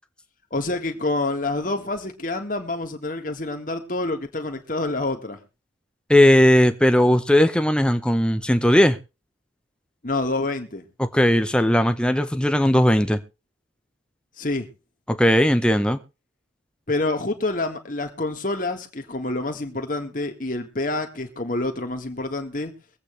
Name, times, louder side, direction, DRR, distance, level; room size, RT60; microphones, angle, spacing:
voice 1, 0.5-5.4 10.0-10.8 14.4-14.7 16.9-22.7, left 2 dB, 45° left, 1.8 m, -27 dB
voice 2, 6.1-9.0 11.0-13.2 15.1-16.0, left 1 dB, 5° left, 0.8 m, -18 dB
23.0 x 8.3 x 3.2 m
head